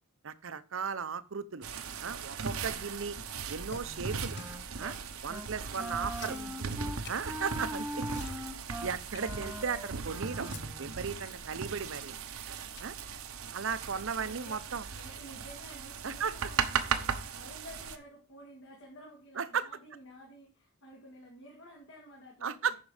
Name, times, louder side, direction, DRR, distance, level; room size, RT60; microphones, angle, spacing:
voice 1, 0.2-1.7 2.0-3.2 3.5-4.4 4.8-5.0 5.2-6.4 7.1-8.1 8.8-10.5 10.8-12.2 12.8-12.9 13.5-14.8 16.0-16.3 19.4-19.7 22.4-22.7, right 6 dB, 65° right, 15 dB, 0.7 m, -35 dB
sound 1, 1.6-18.0, right 6 dB, 85° right, 1.0 m, -38 dB
sound 2, 3.7-4.7 5.2-5.3 5.6-6.8 7.0-7.3 7.7-7.8 8.1-8.7 9.1-10.0 10.3-10.7 11.1-12.1 12.8-12.9 13.5-14.5 15.0-15.2, left 5 dB, 55° left, 0.8 m, -51 dB
Wind instrument woodwind instrument, 3.8-5.0 5.3-5.5 5.8-11.1, equal, 10° right, 0.8 m, -41 dB
voice 2, 5.9-7.1 14.2-14.6 14.9-22.8, equal, 70° left, -3 dB, 2.7 m, -52 dB
9.5 x 6.0 x 4.9 m, 0.36 s
head